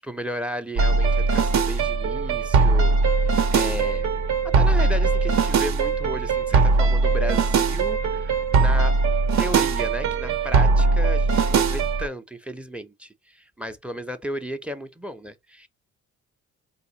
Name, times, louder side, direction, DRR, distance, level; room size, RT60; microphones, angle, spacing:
voice 1, 0.1-4.1 4.5-8.9 9.4-15.7, equal, 5° right, 0.5 m, -34 dB
sound 1, 0.8-12.1, right 4 dB, 65° right, 0.8 m, -20 dB
4.2 x 2.4 x 2.8 m
cardioid pair, 90°, 30 cm